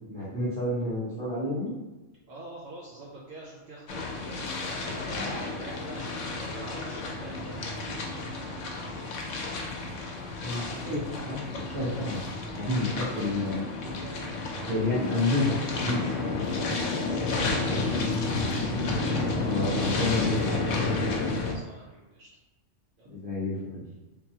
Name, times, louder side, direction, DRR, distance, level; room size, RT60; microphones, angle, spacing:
voice 1, 0.1-1.7 10.4-12.3 12.6-13.7 14.6-16.0 18.6-20.7 23.1-23.8, left 2 dB, 20° right, -8 dB, 1.1 m, -30 dB
voice 2, 2.3-9.0 10.0-10.2 12.7-13.4 13.8-14.2 15.8-15.9 17.1-18.2 21.2-22.3 23.0-23.1, right 2 dB, 60° right, -6 dB, 0.8 m, -46 dB
sound 1, 3.9-21.5, left 3 dB, 80° left, 1.0 m, -31 dB
3.7 x 2.9 x 2.7 m, 1.1 s
omnidirectional pair, 1.3 m